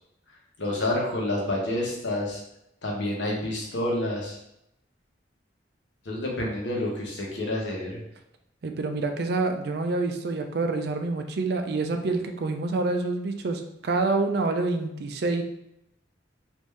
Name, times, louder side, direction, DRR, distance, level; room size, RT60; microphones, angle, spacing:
voice 1, 0.6-2.4 2.8-4.4 6.0-8.0, left 1 dB, 80° left, -2 dB, 0.9 m, -28 dB
voice 2, 8.6-15.4, right 3 dB, 60° right, 6 dB, 0.4 m, -27 dB
3.4 x 2.6 x 3.2 m, 0.82 s
head